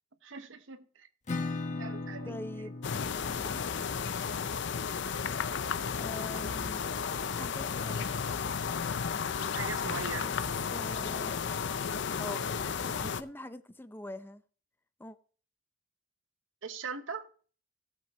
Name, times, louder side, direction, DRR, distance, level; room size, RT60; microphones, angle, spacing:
voice 1, 0.2-1.1 1.8-2.3 9.5-10.3 16.6-17.3, right 5 dB, 85° right, 1.0 m, -40 dB
Acoustic guitar / Strum, 1.3-6.7, left 3 dB, 40° left, 1.2 m, -40 dB
voice 2, 2.2-2.7 6.0-6.8 7.3-8.1 10.2-10.4 10.7-11.4 12.2-14.4 15.0-15.2, left 1 dB, 10° left, 0.5 m, -44 dB
sound 1, 2.8-13.2, left 6 dB, 65° left, 0.6 m, -33 dB
16.5 x 7.6 x 3.1 m
head